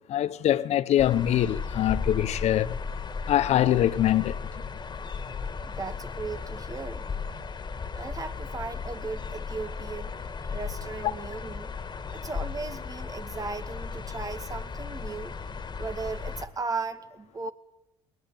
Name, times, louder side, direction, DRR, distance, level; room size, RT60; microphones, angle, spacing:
voice 1, 0.1-2.8 3.3-4.4, left 12 dB, 65° left, 1.1 m, -23 dB
sound 1, 1.0-16.5, left 5 dB, 40° left, 2.3 m, -36 dB
voice 2, 5.7-7.1 7.9-10.1 10.5-11.7 12.1-15.3 15.8-17.5, right 4 dB, 30° right, 2.1 m, -36 dB
21.0 x 19.0 x 9.4 m
supercardioid pair, 70°, 12 cm